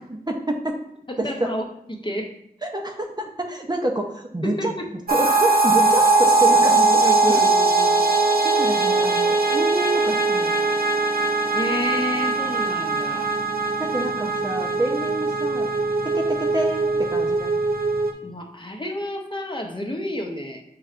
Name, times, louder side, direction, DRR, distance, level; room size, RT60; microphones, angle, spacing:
voice 1, 0.3-0.8 1.2-1.5 2.6-4.7 5.1-7.0 7.3-7.4 8.4-10.6 13.8-15.7 16.0-17.5, right 1 dB, 25° right, 2 dB, 0.6 m, -28 dB
voice 2, 1.1-1.6 1.9-2.3 4.4-4.9 7.0-8.0 11.5-13.3 18.2-20.6, left 1 dB, 30° left, 2 dB, 0.7 m, -30 dB
sound 1, 5.1-18.1, right 3 dB, 70° right, 0.6 m, -20 dB
6.8 x 3.2 x 2.5 m, 0.78 s
wide cardioid pair, 55°, 16 cm